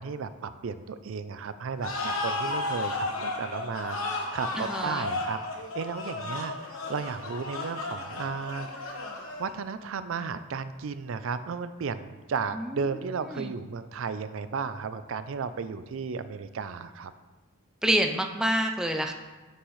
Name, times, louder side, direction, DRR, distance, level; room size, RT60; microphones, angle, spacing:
voice 1, 0.0-9.0 9.4-17.1, right 5 dB, 65° right, 12 dB, 0.4 m, -34 dB
sound 1, 1.8-9.7, left 2 dB, 80° left, 1.2 m, -33 dB
voice 2, 4.6-5.1 13.3-13.5 17.8-19.1, right 1 dB, 5° right, 4 dB, 0.4 m, -27 dB
9.5 x 6.2 x 3.2 m, 1.3 s
head